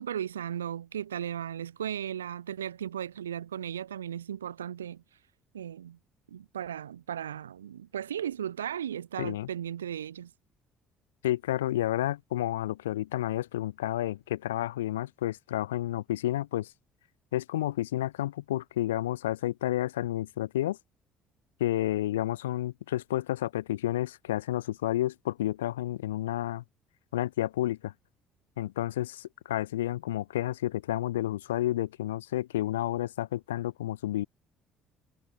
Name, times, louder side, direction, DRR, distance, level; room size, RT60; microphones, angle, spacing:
voice 1, 0.0-5.0 5.5-6.0 6.3-10.3, right 9 dB, 85° right, 7.5 m, -36 dB
voice 2, 9.2-9.5 11.2-16.7 17.3-20.8 21.6-26.6 27.1-27.9 28.6-34.2, left 14 dB, 85° left, 7.2 m, -30 dB
hypercardioid pair, 55°, 0 cm